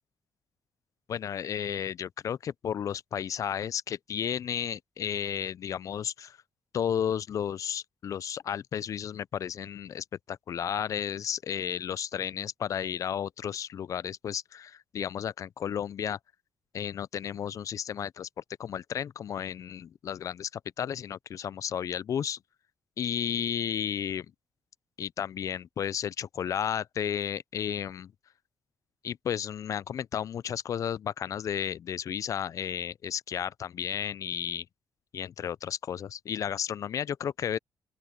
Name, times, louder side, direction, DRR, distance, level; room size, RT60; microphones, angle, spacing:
voice 1, 1.1-6.4 6.7-16.2 16.7-18.3 18.6-22.4 23.0-24.3 25.0-28.1 29.0-34.7 35.1-37.6, left 9 dB, 45° left, 0.3 m, -33 dB
open air
cardioid pair, 135°, 7 cm